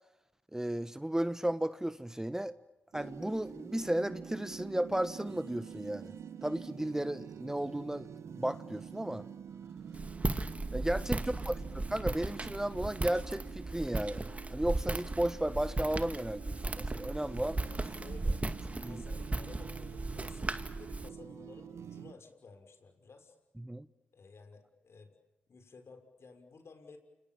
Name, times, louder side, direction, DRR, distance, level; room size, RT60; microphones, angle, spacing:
voice 1, 0.5-2.6 2.9-6.1 6.4-8.1 8.4-9.2 10.7-17.6 18.8-19.0 23.6-23.9, right 1 dB, 10° right, 1.2 m, -34 dB
sound 1, 2.9-22.1, right 7 dB, 65° right, 1.6 m, -47 dB
Walk footsteps, 9.9-21.1, right 2 dB, 25° right, 2.3 m, -36 dB
voice 2, 11.2-11.6 17.7-18.4 18.8-23.4 24.1-25.1 25.5-27.0, left 4 dB, 55° left, 6.2 m, -55 dB
29.0 x 27.0 x 7.3 m
supercardioid pair, 45°, 5 cm